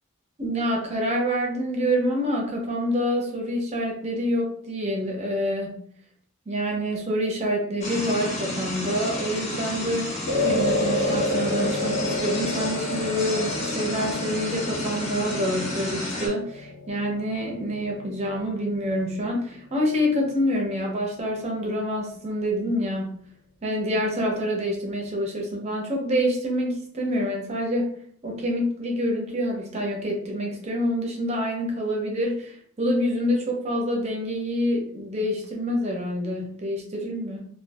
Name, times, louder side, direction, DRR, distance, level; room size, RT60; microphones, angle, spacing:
voice 1, 0.4-5.8 6.5-10.1 10.4-23.3 23.6-27.9 28.2-37.5, equal, 30° right, 0 dB, 0.6 m, -27 dB
sound 1, 7.8-16.3, left 2 dB, 30° left, 0.7 m, -31 dB
sound 2, 10.3-18.8, left 1 dB, 75° left, 0.8 m, -30 dB
2.5 x 2.4 x 2.3 m, 0.63 s
head